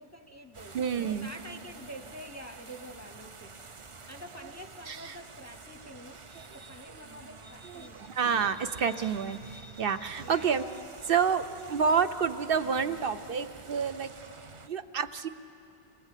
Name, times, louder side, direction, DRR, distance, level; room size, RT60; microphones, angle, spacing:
voice 1, 0.0-3.6 4.1-8.1 10.2-10.5, equal, 20° left, 8 dB, 0.7 m, -47 dB
sound 1, 0.5-14.7, right 4 dB, 35° right, 0.6 m, -50 dB
voice 2, 0.7-1.3 4.9-5.2 6.3-6.7 7.6-14.1 14.7-15.3, right 6 dB, 60° right, 10 dB, 0.9 m, -29 dB
sound 2, 6.9-8.1 12.0-12.1, right 3 dB, 80° right, 3.2 m, -56 dB
26.5 x 20.0 x 8.3 m, 2.7 s
omnidirectional pair, 1.1 m